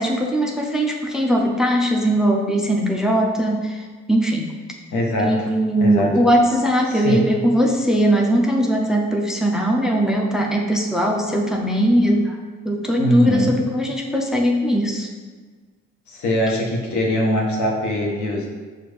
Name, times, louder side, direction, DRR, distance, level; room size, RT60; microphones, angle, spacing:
voice 1, 0.0-4.5 5.2-15.1, equal, ahead, 0 dB, 0.5 m, -20 dB
voice 2, 4.9-5.5 5.8-6.1 6.9-7.3 13.0-13.6 16.1-18.5, equal, 70° left, -1 dB, 1.1 m, -22 dB
6.2 x 2.5 x 3.4 m, 1.5 s
cardioid pair, 90°, 30 cm